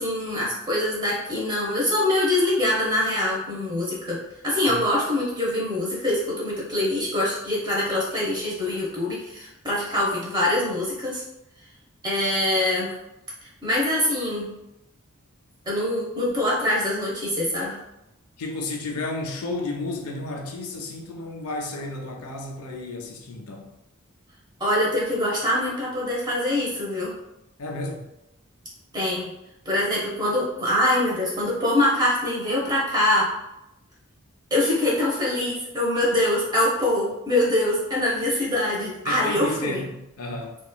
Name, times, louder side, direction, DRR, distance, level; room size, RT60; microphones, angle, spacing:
voice 1, 0.0-4.2 4.4-11.2 12.0-12.9 13.6-14.5 15.7-17.8 24.6-27.1 28.9-29.3 29.6-33.3 34.5-39.8, left 1 dB, 20° right, -5 dB, 0.8 m, -24 dB
voice 2, 18.4-23.6 27.6-28.1 39.1-40.6, left 2 dB, 85° left, 2 dB, 0.5 m, -32 dB
3.0 x 2.3 x 2.2 m, 0.87 s
head